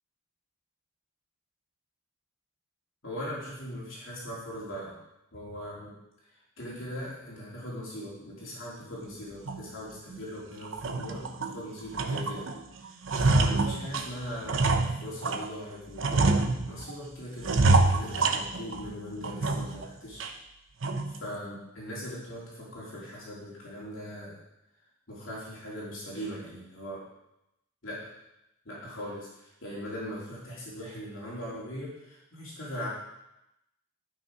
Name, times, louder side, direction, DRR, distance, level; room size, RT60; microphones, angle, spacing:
voice 1, 3.0-5.0 5.3-5.9 6.6-12.5 12.7-20.2 21.2-24.4 25.1-27.0 27.8-28.0 28.6-32.9, equal, 65° left, -6 dB, 3.2 m, -40 dB
sound 1, 9.5-9.6 10.1-10.2 10.7-11.6 11.9-12.6 12.9-15.5 16.0-16.9 17.4-18.9 19.2-19.9 20.2-20.3 20.8-21.2, right 3 dB, 65° right, 0.8 m, -26 dB
12.0 x 5.9 x 4.8 m, 0.86 s
head